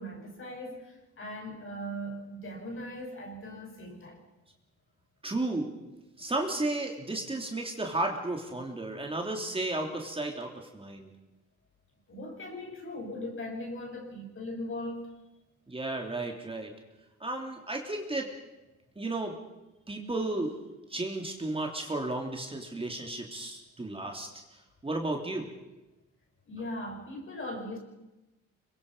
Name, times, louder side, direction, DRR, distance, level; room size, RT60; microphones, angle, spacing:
voice 1, 0.0-4.2 12.1-15.2 26.5-27.8, left 1 dB, 45° left, 2 dB, 5.9 m, -39 dB
voice 2, 5.2-5.7 6.2-11.1 15.7-16.7 17.2-18.3 18.9-19.4 19.9-20.5 20.9-25.5, right 2 dB, 20° right, 2 dB, 3.3 m, -33 dB
25.5 x 22.5 x 5.6 m, 1.0 s
cardioid pair, 90°, 30 cm